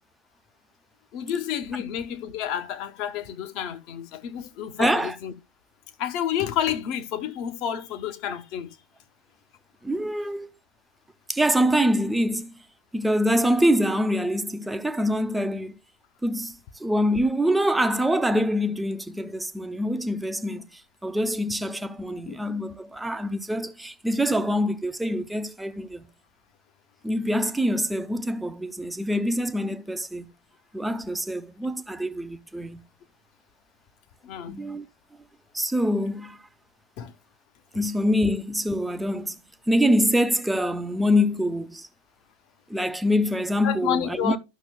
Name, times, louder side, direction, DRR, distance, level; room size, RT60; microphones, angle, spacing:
voice 1, 1.1-5.3 6.0-8.7 22.3-22.4 34.2-34.6 37.0-37.1 43.6-44.4, left 10 dB, 40° left, 1.0 m, -30 dB
voice 2, 4.8-5.2 9.8-10.5 11.3-12.5 12.9-15.8 16.2-26.0 27.0-30.3 30.7-32.8 34.5-34.8 35.5-36.4 37.7-39.4 39.7-41.9 42.7-44.3, equal, 5° right, 0.6 m, -25 dB
13.0 x 6.0 x 2.2 m
figure-of-eight pair, 90°, 0 cm